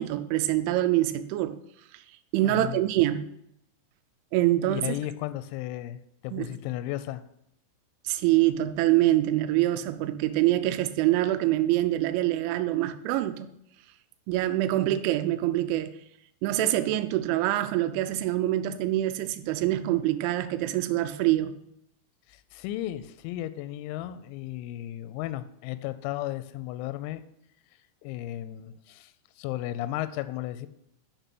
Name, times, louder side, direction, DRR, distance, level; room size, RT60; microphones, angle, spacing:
voice 1, 0.0-1.6 2.3-3.3 4.3-5.0 6.3-6.5 8.1-13.5 14.3-15.9 16.4-21.5, right 14 dB, 90° right, 10 dB, 2.7 m, -25 dB
voice 2, 2.4-2.8 4.7-7.2 22.3-27.2 28.0-30.7, left 14 dB, 90° left, 12 dB, 3.3 m, -34 dB
6.8 x 6.5 x 5.9 m, 0.76 s
omnidirectional pair, 6.0 m